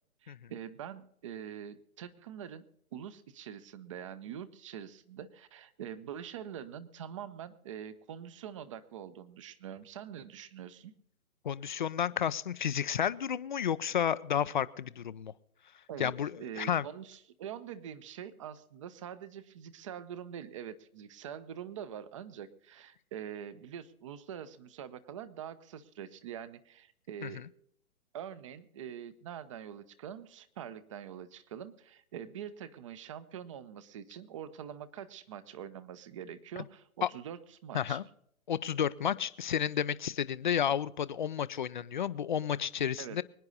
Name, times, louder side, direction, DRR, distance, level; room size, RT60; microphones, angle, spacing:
voice 1, 0.2-2.7 2.9-10.9 15.9-16.1 16.4-27.4 28.1-38.1 43.0-43.2, right 9 dB, 25° right, 15 dB, 0.7 m, -44 dB
voice 2, 11.4-15.3 16.0-16.8 27.2-27.4 37.0-37.1 37.7-38.0 38.5-43.2, left 9 dB, 35° left, 17 dB, 0.5 m, -31 dB
24.5 x 9.6 x 4.0 m, 0.70 s
hypercardioid pair, 145°, 43 cm